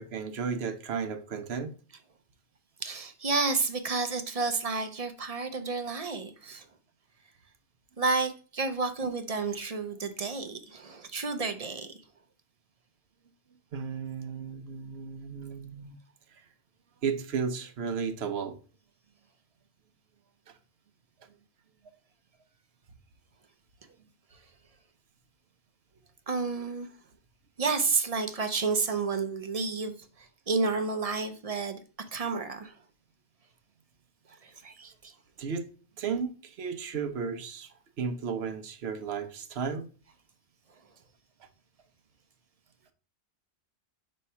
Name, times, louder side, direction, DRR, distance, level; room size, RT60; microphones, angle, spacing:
voice 1, 0.0-1.7 13.7-15.9 17.0-18.6 20.5-20.6 35.4-35.7 36.0-37.7 38.0-39.9 41.4-41.5, right 6 dB, 70° right, 1.0 m, -34 dB
voice 2, 2.8-6.6 8.0-12.0 26.3-26.9 27.6-30.0 30.5-31.8 32.1-32.7 34.4-35.1, right 4 dB, 40° right, 0.7 m, -30 dB
5.4 x 3.2 x 5.5 m
omnidirectional pair, 1.1 m